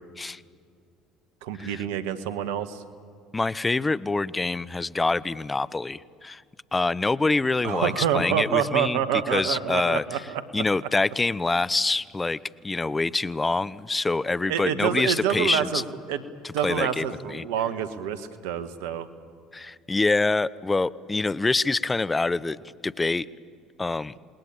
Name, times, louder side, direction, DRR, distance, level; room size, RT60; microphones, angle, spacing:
voice 1, 1.4-2.8 7.6-10.6 14.5-15.8 16.1-16.2 16.5-19.1, right 9 dB, 75° right, 12 dB, 1.5 m, -27 dB
voice 2, 3.3-6.4 6.7-9.0 9.3-10.2 10.5-12.4 12.6-15.8 16.4-17.1 17.3-17.4 19.5-22.6 22.8-23.3 23.8-24.1, left 3 dB, 20° left, 18 dB, 0.7 m, -25 dB
27.5 x 20.5 x 8.8 m, 2.2 s
hypercardioid pair, 65°, 0 cm